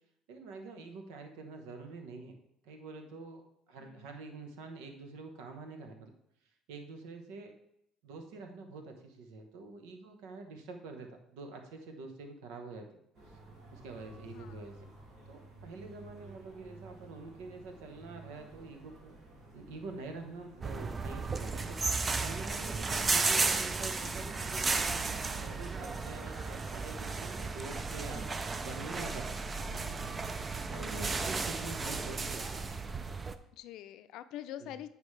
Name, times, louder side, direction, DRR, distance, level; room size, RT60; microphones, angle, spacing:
voice 1, 0.3-2.3 2.6-3.4 3.7-6.1 6.7-7.5 8.0-12.9 13.3-13.4 13.7-14.9 15.3-19.1 19.5-29.3 30.8-32.7 34.6-34.7, right 3 dB, 90° right, 5 dB, 1.1 m, -46 dB
voice 2, 3.8-4.1 14.2-14.6 30.6-31.2 31.6-31.8 33.5-34.9, left 12 dB, 75° left, 12 dB, 0.4 m, -46 dB
sound 1, 13.1-32.3, right 2 dB, 60° right, 2.5 m, -54 dB
sound 2, 20.6-33.3, right 4 dB, 25° right, 0.4 m, -34 dB
9.3 x 5.1 x 3.3 m, 0.76 s
cardioid pair, 105°, 0 cm